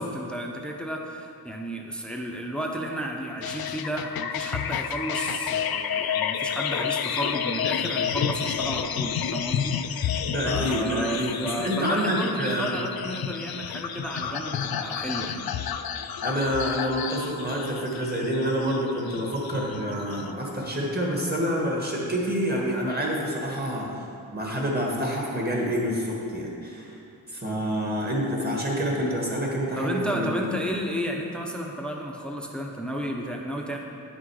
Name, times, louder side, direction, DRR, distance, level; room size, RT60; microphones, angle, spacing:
voice 1, 0.0-15.4 29.8-33.8, equal, 5° left, 1 dB, 0.7 m, -32 dB
sound 1, 3.4-20.3, left 8 dB, 70° left, 0.5 m, -30 dB
voice 2, 10.2-12.7 16.2-23.9 24.3-27.0 27.3-30.3, equal, 25° right, -2 dB, 1.5 m, -27 dB
9.6 x 6.1 x 4.8 m, 2.6 s
wide cardioid pair, 120°, 37 cm